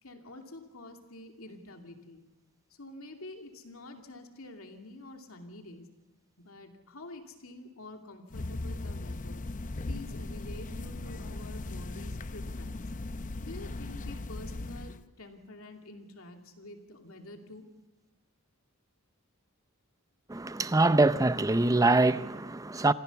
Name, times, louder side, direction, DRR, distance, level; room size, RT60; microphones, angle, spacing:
voice 1, 0.0-2.2 2.7-5.8 6.4-9.4 9.8-12.8 13.4-17.7, left 2 dB, 90° left, 2.6 m, -47 dB
sound 1, 8.3-15.0, left 2 dB, 40° left, 0.6 m, -38 dB
voice 2, 20.3-22.9, right 2 dB, 15° right, 0.6 m, -24 dB
26.5 x 15.5 x 7.0 m
head